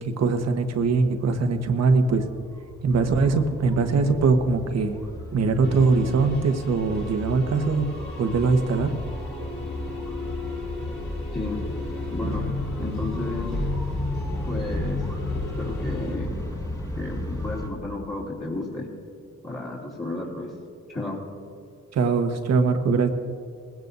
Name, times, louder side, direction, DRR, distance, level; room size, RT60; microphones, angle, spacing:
voice 1, 0.0-2.2 2.8-5.0 5.3-7.9 8.2-8.9 12.2-12.3 21.9-23.1, right 4 dB, 60° right, 6 dB, 1.4 m, -22 dB
sound 1, 0.7-17.7, left 1 dB, 10° left, 2.0 m, -35 dB
sound 2, 5.6-16.2, left 2 dB, 40° left, 3.8 m, -33 dB
voice 2, 12.1-12.5 12.8-13.5 14.5-15.0 15.4-16.3 17.0-18.9 19.4-20.5 20.9-21.2, left 2 dB, 25° left, -8 dB, 3.0 m, -32 dB
20.0 x 16.5 x 2.7 m, 2.3 s
cardioid pair, 90°, 30 cm